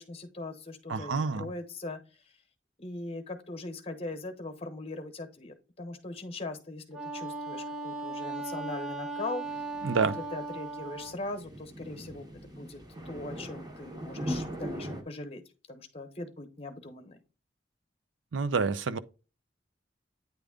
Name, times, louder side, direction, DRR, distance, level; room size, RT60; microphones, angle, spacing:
voice 1, 0.0-2.0 2.8-9.4 10.1-12.8 13.0-15.4 15.7-17.2, left 2 dB, 35° left, 1.2 m, -40 dB
voice 2, 0.9-1.5 9.8-10.2 18.3-19.0, right 5 dB, 85° right, 0.5 m, -28 dB
Wind instrument woodwind instrument, 6.9-11.2, right 3 dB, 5° right, 0.7 m, -37 dB
sound 1, 9.4-15.0, equal, 20° right, 1.2 m, -40 dB
9.3 x 3.4 x 3.7 m
head